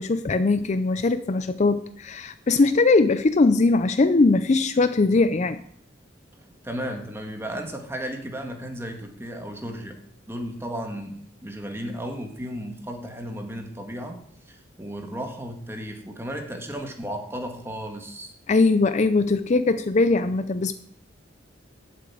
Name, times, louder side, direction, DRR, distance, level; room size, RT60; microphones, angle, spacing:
voice 1, 0.0-5.6 18.5-20.7, left 3 dB, 35° left, 12 dB, 0.4 m, -20 dB
voice 2, 6.3-10.0 10.3-18.3, equal, 15° right, 3 dB, 1.7 m, -34 dB
9.3 x 7.8 x 8.5 m, 0.68 s
head